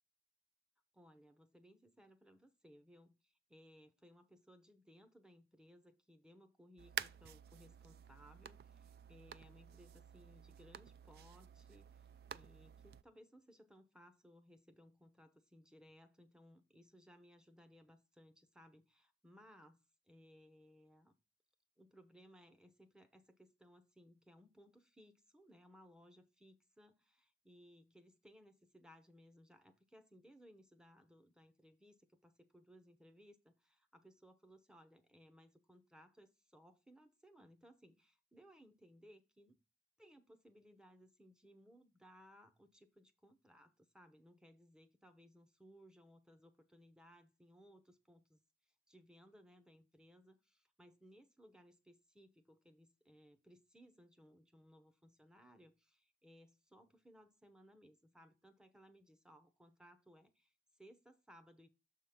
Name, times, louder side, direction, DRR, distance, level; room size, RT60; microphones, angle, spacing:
voice 1, 0.9-19.8 20.0-21.2 21.8-39.6 40.0-48.4 48.9-61.7, equal, 5° right, 0.7 m, -63 dB
sound 1, 6.8-13.0, right 8 dB, 55° right, 0.3 m, -50 dB
6.8 x 3.6 x 5.6 m
head